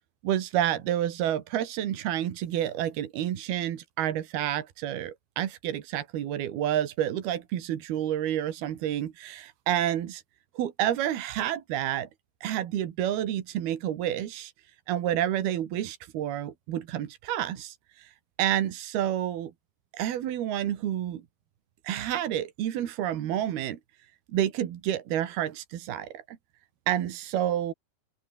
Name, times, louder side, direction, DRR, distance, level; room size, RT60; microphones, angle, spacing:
voice 1, 0.2-10.2 10.6-12.1 12.4-14.5 14.9-18.1 18.4-19.5 19.9-21.2 21.8-23.8 24.3-26.2 26.9-27.7, right 11 dB, 80° right, 3.8 m, -29 dB
open air
omnidirectional pair, 4.4 m